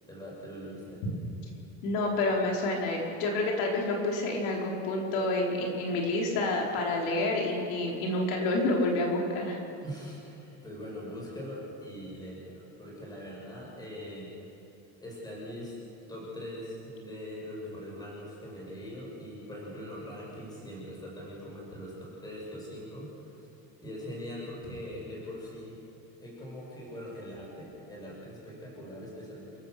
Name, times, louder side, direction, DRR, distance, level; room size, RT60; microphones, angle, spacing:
voice 1, 0.1-1.1 9.8-14.3 15.0-15.7 16.1-23.5 23.8-25.8 26.2-29.6, equal, 10° left, -4 dB, 6.5 m, -42 dB
voice 2, 1.8-9.6, left 2 dB, 80° left, -1 dB, 4.5 m, -28 dB
28.5 x 16.0 x 6.7 m, 2.8 s
cardioid pair, 175°, 39 cm